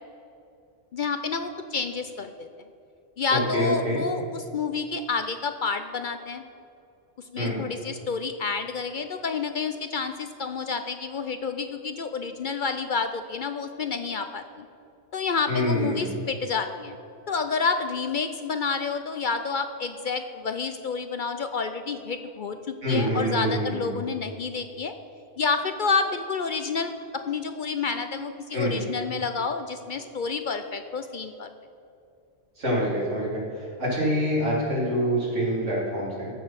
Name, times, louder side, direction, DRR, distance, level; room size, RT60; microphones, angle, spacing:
voice 1, 0.9-2.5 3.2-6.4 7.2-14.7 15.1-17.0 17.3-24.9 25.4-31.5, left 5 dB, 55° left, 8 dB, 0.6 m, -29 dB
voice 2, 3.3-4.0 7.4-7.6 15.5-16.1 22.8-23.9 28.5-28.8 32.6-36.3, equal, 90° right, -6 dB, 3.6 m, -26 dB
14.5 x 6.6 x 5.8 m, 2.7 s
omnidirectional pair, 1.2 m